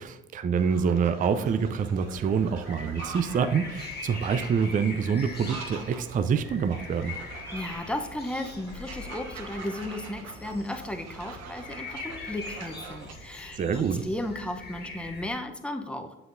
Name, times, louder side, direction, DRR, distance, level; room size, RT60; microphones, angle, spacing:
voice 1, 0.0-7.1 13.6-14.1, right 6 dB, 25° right, 10 dB, 0.4 m, -26 dB
sound 1, 0.5-13.1, right 5 dB, 55° right, 0.9 m, -45 dB
sound 2, 1.4-15.3, left 3 dB, 30° left, 1.6 m, -42 dB
voice 2, 7.5-16.1, left 1 dB, 5° left, 5 dB, 0.7 m, -35 dB
7.5 x 5.8 x 2.6 m, 0.92 s
hypercardioid pair, 60°, 32 cm